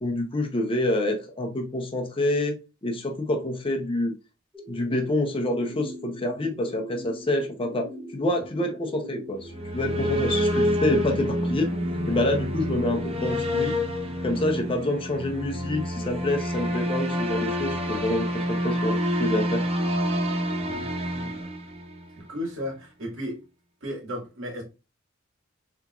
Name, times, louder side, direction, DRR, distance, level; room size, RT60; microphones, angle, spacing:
voice 1, 0.0-4.1 4.7-11.7 12.1-13.7 14.2-19.6, left 1 dB, 25° left, 0.8 m, -27 dB
sound 1, 4.5-20.7, equal, 5° right, 0.9 m, -40 dB
sound 2, 9.4-22.2, equal, 30° right, 0.7 m, -28 dB
voice 2, 20.6-21.5 22.2-23.4 23.8-24.6, equal, 70° right, 2.0 m, -35 dB
4.5 x 3.5 x 2.4 m
head